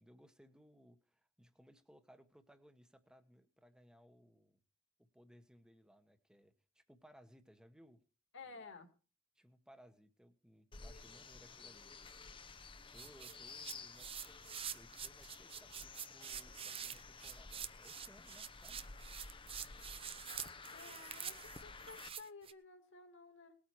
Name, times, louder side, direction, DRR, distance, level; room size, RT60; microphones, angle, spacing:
voice 1, 0.0-4.6 5.0-8.0 8.5-8.6 9.3-11.9 12.9-14.4 14.7-18.8, equal, 5° right, 8 dB, 1.3 m, -64 dB
voice 2, 8.3-8.9 20.7-23.6, left 4 dB, 60° left, 6 dB, 2.3 m, -54 dB
sound 1, 10.7-22.1, left 4 dB, 25° left, 0.8 m, -53 dB
sound 2, 12.9-22.5, right 8 dB, 25° right, 0.6 m, -47 dB
19.5 x 8.7 x 4.7 m, 0.38 s
head